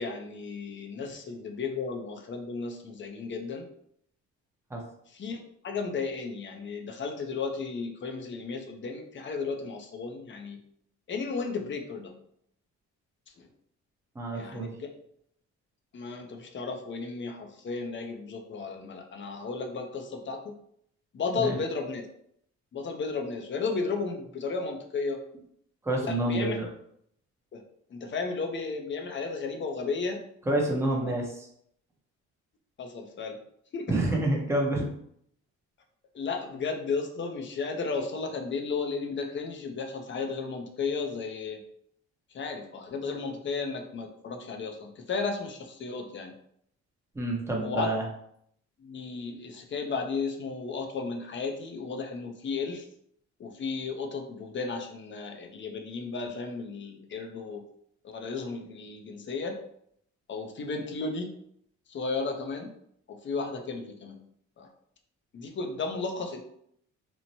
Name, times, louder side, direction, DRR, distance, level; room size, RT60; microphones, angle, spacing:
voice 1, 0.0-3.7 5.1-10.6 11.1-12.2 13.4-13.5 14.3-14.9 15.9-20.5 21.1-22.0 22.7-25.2 26.0-26.6 27.5-27.6 27.9-30.3 30.7-31.1 32.8-33.4 33.7-34.0 36.1-41.6 42.3-46.3 47.6-47.9 48.8-52.9 53.4-57.6 58.0-59.6 60.3-61.4 61.9-62.7 63.1-64.3 64.6-64.7 65.3-66.4, left 4 dB, 40° left, 3 dB, 0.6 m, -34 dB
voice 2, 14.1-14.7 21.3-21.6 25.8-26.7 30.5-31.3 33.9-34.9 47.1-48.0, right 1 dB, 10° right, -2 dB, 0.7 m, -28 dB
3.0 x 2.1 x 2.7 m, 0.70 s
cardioid pair, 90°, 30 cm